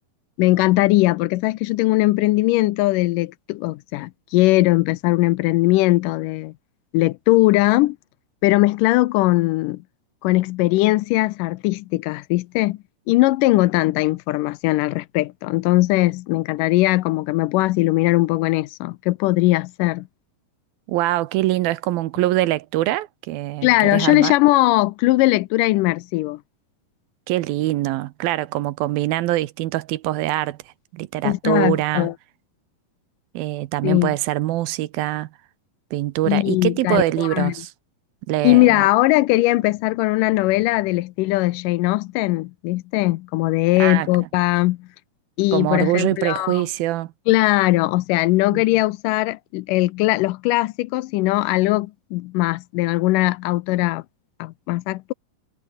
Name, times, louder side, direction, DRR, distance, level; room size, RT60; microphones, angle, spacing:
voice 1, 0.4-6.5 6.9-8.0 8.4-9.8 10.2-12.8 13.1-20.1 23.6-26.4 31.2-32.1 33.8-34.2 36.3-37.5 38.4-44.9 45.4-46.7 47.3-54.0 54.4-55.1, left 19 dB, 85° left, 2.0 m, -19 dB
voice 2, 20.9-24.3 27.3-30.6 30.9-32.1 33.3-35.3 35.9-37.7 38.3-38.8 43.8-44.1 45.5-47.1 48.5-48.6, right 16 dB, 80° right, 2.6 m, -23 dB
omnidirectional pair, 4.3 m